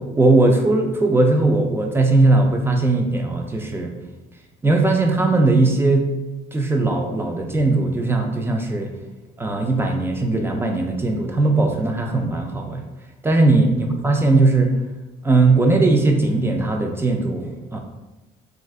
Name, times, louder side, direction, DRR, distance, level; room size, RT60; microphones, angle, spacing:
voice 1, 0.2-3.9 4.6-6.1 6.5-8.9 9.4-12.8 13.2-14.7 15.2-17.8, right 2 dB, 15° right, 3 dB, 0.4 m, -19 dB
3.3 x 2.5 x 2.4 m, 1.1 s
cardioid pair, 110°, 17 cm